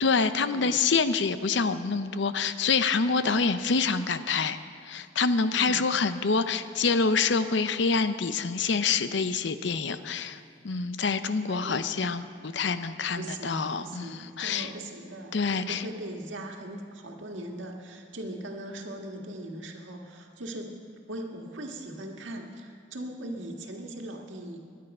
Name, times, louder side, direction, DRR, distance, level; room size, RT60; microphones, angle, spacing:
voice 1, 0.0-4.6 4.8-10.4 10.6-14.7 15.3-15.8, left 4 dB, 70° left, 11 dB, 0.7 m, -26 dB
voice 2, 11.5-11.8 13.2-20.8 21.1-24.6, right 1 dB, 85° right, 2 dB, 1.8 m, -39 dB
23.0 x 10.5 x 5.5 m, 2.1 s
head